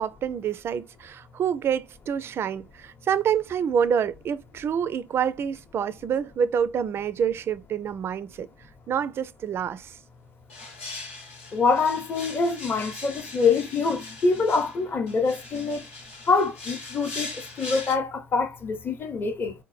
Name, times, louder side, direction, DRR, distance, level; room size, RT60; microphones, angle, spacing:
voice 1, 0.0-8.5 8.9-10.0, right 8 dB, 35° right, 0.3 m, -27 dB
sound 1, 10.5-18.0, left 3 dB, 75° left, 1.0 m, -40 dB
voice 2, 11.5-15.8 16.3-19.5, left 4 dB, 30° left, 0.8 m, -25 dB
3.6 x 2.1 x 3.1 m
figure-of-eight pair, 60°, 7 cm